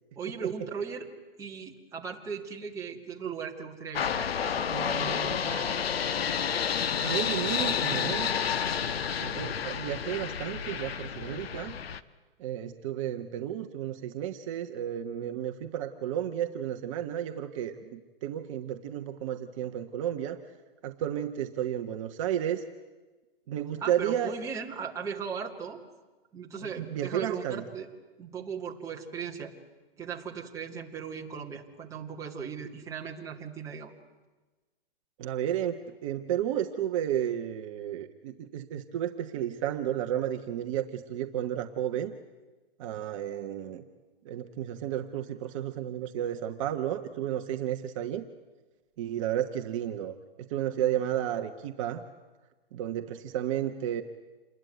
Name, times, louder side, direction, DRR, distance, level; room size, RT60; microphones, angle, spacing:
voice 1, 0.2-1.1 1.4-5.7 23.8-25.8 26.3-27.9 28.2-29.5 30.0-33.9, right 6 dB, 10° right, -1 dB, 2.1 m, -38 dB
sound 1, 3.9-12.0, left 7 dB, 85° left, 1.3 m, -30 dB
voice 2, 7.0-8.3 9.2-11.8 12.4-20.4 20.8-22.6 23.5-24.3 26.8-27.6 35.2-42.1 42.8-43.8 44.2-48.2 49.0-50.1 50.5-52.0 52.7-54.0, right 11 dB, 35° right, 5 dB, 1.2 m, -32 dB
28.0 x 21.5 x 9.3 m, 1.2 s
hypercardioid pair, 160°, 30 cm